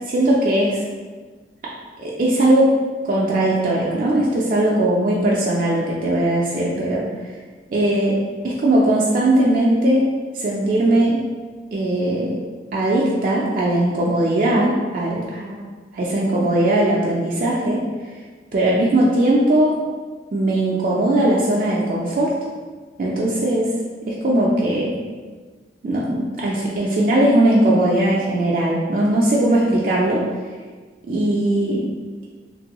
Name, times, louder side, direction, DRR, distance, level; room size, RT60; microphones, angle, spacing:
voice 1, 0.1-0.8 2.0-2.7 3.0-7.3 7.7-8.2 8.4-10.1 10.3-11.2 11.7-12.4 12.7-15.6 15.9-17.8 18.5-19.7 20.3-22.3 23.0-23.7 24.0-24.9 25.8-30.2 31.1-31.9, right 1 dB, 50° right, -5 dB, 0.3 m, -19 dB
3.0 x 2.6 x 2.9 m, 1.4 s
head